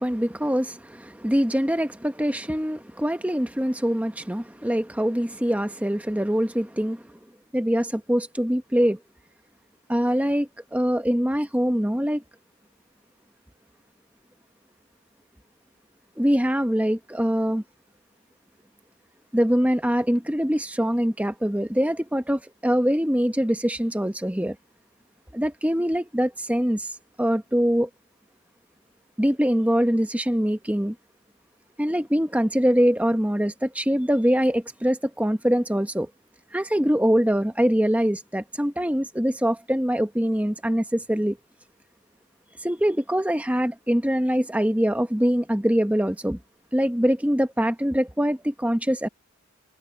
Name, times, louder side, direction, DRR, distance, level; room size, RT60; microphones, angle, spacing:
voice 1, 0.0-7.1 7.5-9.0 9.9-12.2 16.2-17.6 19.3-24.6 25.3-26.9 27.2-27.9 29.2-30.9 31.8-36.1 36.5-41.4 42.6-46.4 46.7-49.1, equal, 5° right, 1.0 m, -23 dB
head